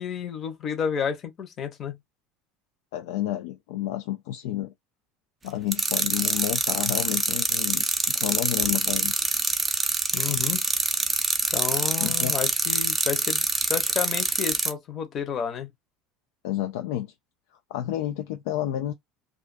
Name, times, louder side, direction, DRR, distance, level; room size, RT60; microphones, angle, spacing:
voice 1, 0.0-2.0 10.1-10.6 11.5-13.4 13.7-15.7, left 7 dB, 35° left, 0.8 m, -30 dB
voice 2, 2.9-4.7 5.4-9.2 12.0-12.3 16.4-17.1 17.7-18.9, left 13 dB, 85° left, 0.4 m, -30 dB
sound 1, 5.7-14.7, right 3 dB, 15° right, 0.4 m, -25 dB
2.4 x 2.3 x 2.4 m
cardioid pair, 145°, 0 cm